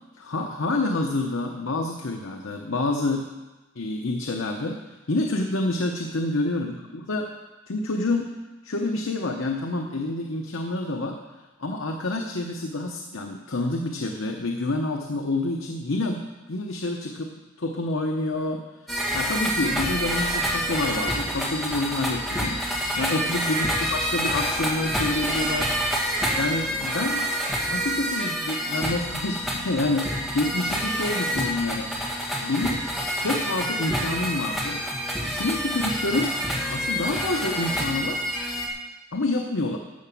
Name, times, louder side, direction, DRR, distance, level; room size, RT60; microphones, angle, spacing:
voice 1, 0.2-3.3 3.8-4.8 5.1-6.7 7.1-7.2 7.7-8.3 8.6-11.2 11.6-16.2 16.5-17.3 17.6-18.6 18.9-25.7 26.4-27.3 27.7-31.9 32.4-32.8 33.2-34.8 35.2-36.3 36.7-38.2 39.1-39.8, left 2 dB, 75° left, 2 dB, 0.9 m, -28 dB
sound 1, 18.9-38.7, equal, ahead, 1.7 m, -27 dB
13.0 x 6.0 x 7.1 m, 1.1 s
head